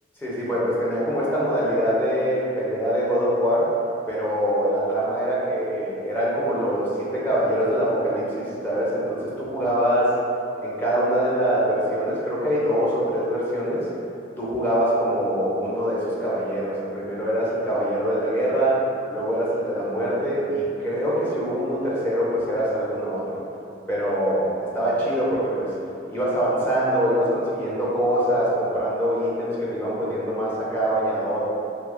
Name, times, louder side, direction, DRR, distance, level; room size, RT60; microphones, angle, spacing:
voice 1, 0.2-3.7 4.1-10.1 10.6-13.9 14.4-23.4 23.9-25.7 26.1-31.5, equal, 10° left, -8 dB, 0.6 m, -24 dB
2.9 x 2.3 x 3.5 m, 2.7 s
head